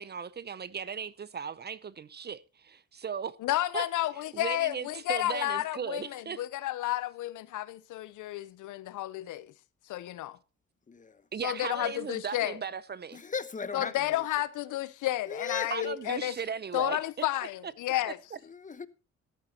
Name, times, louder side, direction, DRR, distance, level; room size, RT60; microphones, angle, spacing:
voice 1, 0.0-3.4 3.7-3.9 4.3-6.4 11.3-13.2 15.7-17.0 17.6-17.7 18.1-18.4, right 6 dB, 35° right, 0.6 m, -37 dB
voice 2, 3.4-9.5 9.9-10.4 11.4-12.6 13.7-16.3 16.7-18.2, left 15 dB, 80° left, 0.7 m, -31 dB
voice 3, 13.1-14.2 15.2-16.1 18.4-18.9, left 5 dB, 25° left, 1.0 m, -37 dB
13.5 x 12.5 x 2.9 m
cardioid pair, 90°, 30 cm